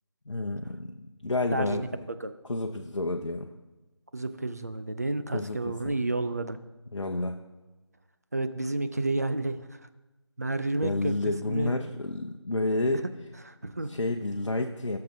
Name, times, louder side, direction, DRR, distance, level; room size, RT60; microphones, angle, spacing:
voice 1, 0.3-0.9 1.2-1.8 2.5-3.5 5.3-5.9 6.9-7.4 10.8-13.0 13.9-15.0, left 2 dB, 80° left, 3 dB, 0.7 m, -30 dB
voice 2, 1.5-1.9 2.2-2.3 4.1-6.6 8.3-9.6 10.4-11.2 11.5-11.8 13.4-13.9, right 2 dB, 35° right, 10 dB, 0.4 m, -30 dB
14.5 x 6.7 x 2.7 m, 1.1 s
figure-of-eight pair, 165°, 15 cm